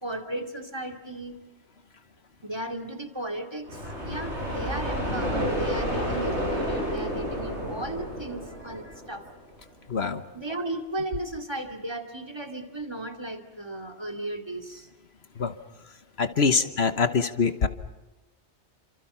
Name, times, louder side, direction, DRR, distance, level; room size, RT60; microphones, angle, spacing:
voice 1, 0.0-1.3 2.4-9.2 10.3-14.9 16.5-16.7, right 1 dB, 20° right, 7 dB, 2.5 m, -35 dB
sound 1, 3.7-9.4, equal, 75° right, 7.7 m, -30 dB
voice 2, 9.9-10.2 15.4-15.5 16.2-17.7, left 5 dB, 65° left, 10 dB, 1.4 m, -24 dB
29.5 x 26.5 x 5.7 m, 1.1 s
omnidirectional pair, 1.2 m